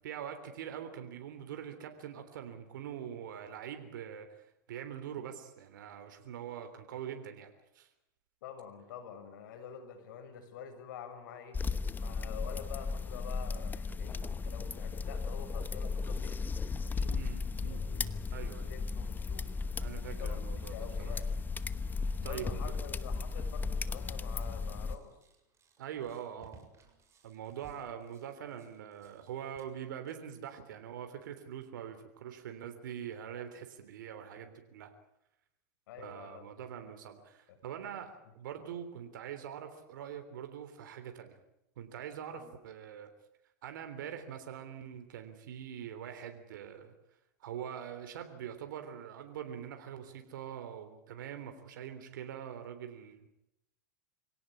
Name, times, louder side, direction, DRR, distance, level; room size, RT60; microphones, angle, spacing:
voice 1, 0.0-4.3 4.7-7.9 17.1-18.7 19.8-21.2 22.2-22.8 25.8-26.7 27.2-34.9 36.0-41.4 41.8-43.1 43.6-46.9 47.4-53.3, right 9 dB, 85° right, 7 dB, 3.4 m, -44 dB
voice 2, 8.4-11.6 12.0-16.4 16.8-17.3 17.6-19.5 20.0-21.3 22.2-25.1 35.9-36.5 36.8-36.9 37.5-37.6 38.5-38.6 42.3-42.5, left 7 dB, 80° left, 7 dB, 6.6 m, -48 dB
sound 1, 11.5-25.0, left 4 dB, 20° left, 1.0 m, -35 dB
sound 2, 24.2-30.1, right 5 dB, 25° right, 6.9 m, -62 dB
25.5 x 17.5 x 9.9 m, 0.84 s
supercardioid pair, 115°, 10 cm